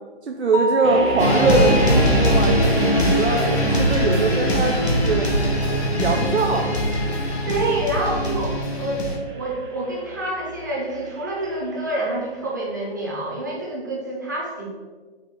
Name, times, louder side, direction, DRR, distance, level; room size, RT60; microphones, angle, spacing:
voice 1, 0.2-5.3 6.0-6.8, right 3 dB, 90° right, 2 dB, 0.5 m, -22 dB
Mallet percussion, 0.5-2.3, equal, 55° left, 0.5 m, -28 dB
sound 1, 0.8-11.9, right 1 dB, 50° right, 1.1 m, -29 dB
sound 2, 1.2-9.2, equal, 75° left, 1.2 m, -21 dB
voice 2, 7.4-14.7, right 1 dB, 20° right, -4 dB, 0.5 m, -27 dB
4.2 x 2.5 x 4.1 m, 1.5 s
figure-of-eight pair, 150°, 32 cm